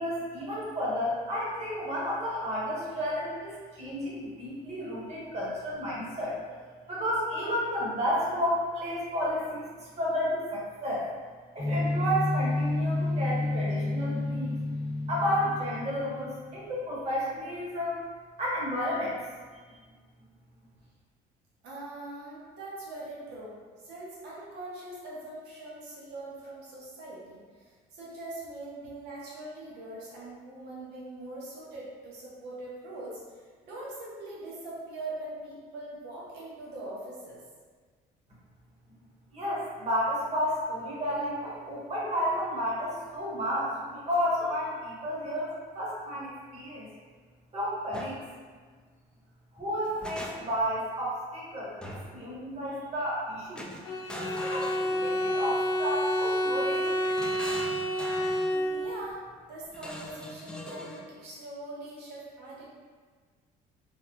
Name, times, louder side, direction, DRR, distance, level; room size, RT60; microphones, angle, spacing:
voice 1, 0.0-6.4 6.9-11.1 11.5-14.5 15.1-18.0 18.4-19.2 39.3-46.9 47.5-48.2 49.5-53.7 54.2-57.0, equal, 40° right, -6 dB, 1.1 m, -32 dB
sound 1, 11.6-16.5, left 2 dB, 40° left, 0.9 m, -30 dB
voice 2, 21.6-37.4 58.5-59.2 59.5-62.7, right 2 dB, 80° right, -6 dB, 0.8 m, -42 dB
sound 2, 47.9-48.2 49.6-50.7 51.8-52.2 53.6-55.4 56.7-58.5 59.7-61.1, equal, 5° left, 0.3 m, -42 dB
Bowed string instrument, 53.8-59.1, equal, 75° left, 0.6 m, -29 dB
3.3 x 2.0 x 2.8 m, 1.5 s
cardioid pair, 110°, 17 cm